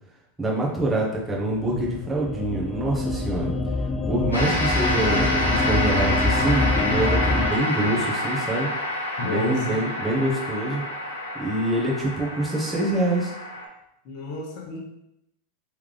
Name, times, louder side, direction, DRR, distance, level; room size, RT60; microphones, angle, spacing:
voice 1, 0.4-3.5 4.1-8.7 9.2-10.8 11.4-13.3, right 1 dB, 10° right, -4 dB, 1.3 m, -25 dB
sound 1, 1.6-7.5, left 3 dB, 20° left, 0.4 m, -26 dB
sound 2, 4.3-13.6, left 1 dB, 90° left, 1.0 m, -28 dB
voice 2, 9.2-9.9 14.0-14.8, left 2 dB, 50° left, -1 dB, 1.0 m, -31 dB
3.5 x 3.5 x 3.4 m, 0.82 s
hypercardioid pair, 90°, 0 cm